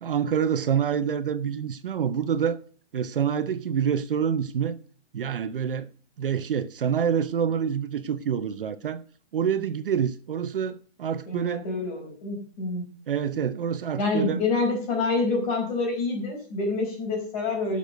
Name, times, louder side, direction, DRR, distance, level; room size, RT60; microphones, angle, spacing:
voice 1, 0.0-2.6 2.9-4.8 5.1-5.9 6.2-9.0 9.3-11.6 13.1-14.4, right 8 dB, 50° right, 0.7 m, -27 dB
voice 2, 11.3-12.9 14.0-17.8, left 3 dB, 30° left, 4.7 m, -27 dB
11.5 x 6.9 x 6.3 m
hypercardioid pair, 170°, 34 cm